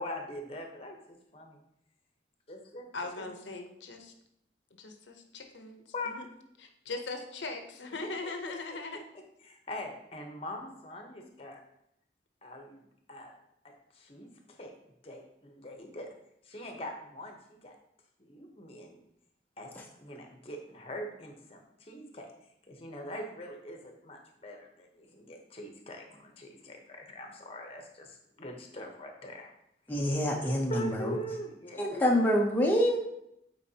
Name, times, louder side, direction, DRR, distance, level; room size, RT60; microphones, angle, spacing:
voice 1, 0.0-1.6 2.5-2.9 3.2-3.3 5.9-6.1 8.0-8.3 9.4-11.6 12.4-13.3 13.9-14.7 15.0-16.1 16.4-17.8 18.2-19.0 19.6-19.7 20.0-22.3 22.7-29.5 30.7-32.1, left 1 dB, 30° left, 3 dB, 0.9 m, -42 dB
voice 2, 2.9-4.1 4.8-6.3 6.6-9.0, left 3 dB, 80° left, 5 dB, 0.7 m, -40 dB
voice 3, 29.9-31.2 31.8-33.0, equal, 10° left, -1 dB, 0.6 m, -26 dB
8.2 x 4.5 x 2.8 m, 0.78 s
head